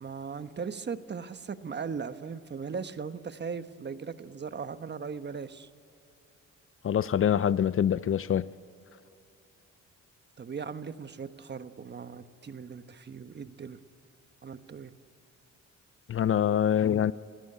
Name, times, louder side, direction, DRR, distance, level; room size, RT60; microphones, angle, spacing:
voice 1, 0.0-5.7 10.4-13.8 14.4-14.9, right 6 dB, 35° right, 1.2 m, -38 dB
voice 2, 6.8-8.5 16.1-17.1, left 9 dB, 45° left, 0.6 m, -25 dB
27.5 x 17.0 x 9.8 m
cardioid pair, 90°, 30 cm